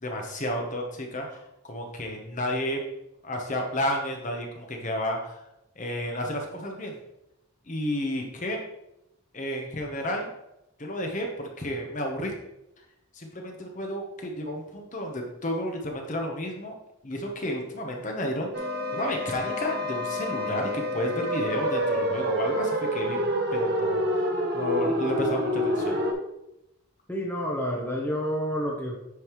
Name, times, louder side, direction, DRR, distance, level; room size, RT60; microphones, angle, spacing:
voice 1, 0.0-2.8 3.2-5.4 5.8-7.0 7.7-8.6 9.3-10.3 10.8-12.3 13.1-16.8 17.0-23.2 23.5-24.3 24.5-26.0, left 1 dB, 35° left, 2 dB, 1.0 m, -31 dB
sound 1, 18.5-26.1, equal, 45° right, 1.0 m, -28 dB
voice 2, 27.1-29.0, equal, 10° left, -1 dB, 0.9 m, -29 dB
9.4 x 5.3 x 3.1 m, 0.86 s
head